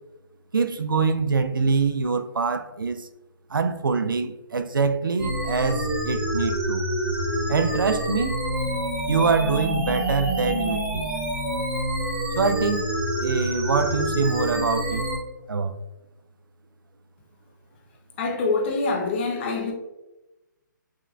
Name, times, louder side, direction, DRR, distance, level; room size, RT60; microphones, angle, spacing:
voice 1, 0.5-3.1 3.5-6.9 7.5-8.4 9.1-11.1 12.4-15.0 15.5-15.8, right 4 dB, 90° right, 0.5 m, -24 dB
sound 1, 5.2-15.2, right 1 dB, 10° right, 0.8 m, -27 dB
voice 2, 18.2-19.7, left 3 dB, 35° left, 1.0 m, -25 dB
6.3 x 3.4 x 2.5 m
hypercardioid pair, 150°, 11 cm